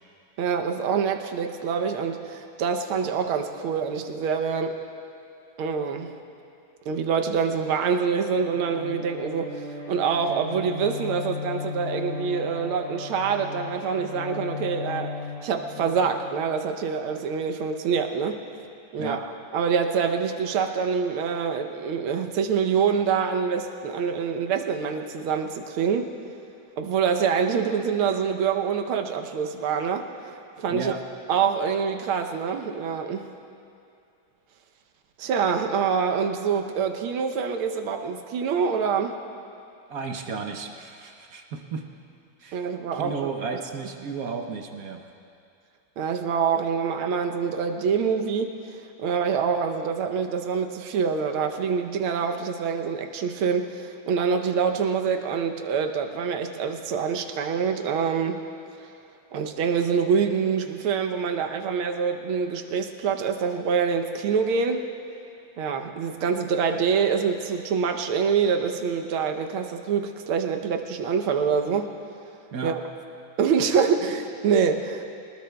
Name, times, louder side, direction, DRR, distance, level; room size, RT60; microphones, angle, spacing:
voice 1, 0.4-4.7 5.6-6.2 6.9-9.5 9.9-15.1 15.4-18.4 18.9-19.2 19.5-26.1 26.8-30.1 30.6-30.9 31.3-33.3 35.2-39.2 42.5-43.3 46.0-48.5 49.0-58.4 59.3-64.9 65.6-71.9 72.6-72.8 73.4-75.1, right 6 dB, 80° right, 5 dB, 1.7 m, -25 dB
Bowed string instrument, 8.3-16.7, left 5 dB, 50° left, 2.4 m, -36 dB
voice 2, 30.7-31.0 39.9-41.9 42.4-45.0 72.5-72.8, right 5 dB, 60° right, 3 dB, 1.0 m, -33 dB
24.0 x 19.5 x 2.3 m, 2.5 s
omnidirectional pair, 2.3 m